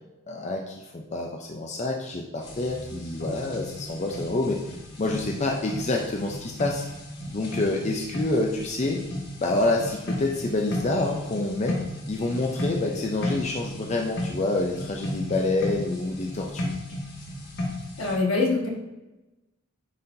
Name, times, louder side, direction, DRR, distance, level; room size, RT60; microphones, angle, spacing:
voice 1, 0.3-6.9 7.3-9.0 9.4-11.8 12.1-16.7, left 2 dB, 35° left, 0 dB, 0.5 m, -27 dB
sound 1, 2.4-18.1, left 1 dB, 55° left, 1.4 m, -35 dB
voice 2, 18.0-18.7, left 3 dB, 75° left, -2 dB, 1.6 m, -24 dB
9.3 x 4.1 x 2.6 m, 1.0 s
head